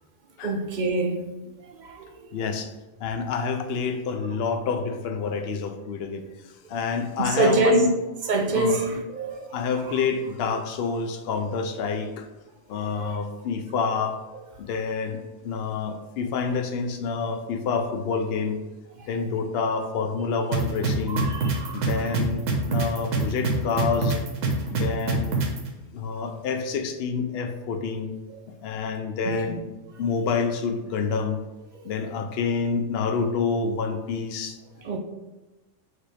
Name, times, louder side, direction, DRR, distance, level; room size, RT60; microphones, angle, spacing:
voice 1, 0.4-1.2 1.6-2.1 7.2-7.9 8.3-9.5 12.9-13.0 19.0-19.1 21.1-21.9 29.3-29.6 34.8-35.0, right 2 dB, 60° right, 0.5 m, -25 dB
voice 2, 2.3-2.7 3.0-6.2 6.7-7.9 8.5-8.7 9.5-12.3 12.7-14.2 14.6-18.6 19.1-21.3 21.7-24.2 24.7-25.4 25.9-28.2 28.5-29.6 30.0-31.4 31.8-34.6, left 5 dB, 65° left, 0.7 m, -28 dB
sound 1, 20.5-25.6, right 4 dB, 85° right, 1.2 m, -24 dB
6.4 x 2.5 x 3.3 m
omnidirectional pair, 1.3 m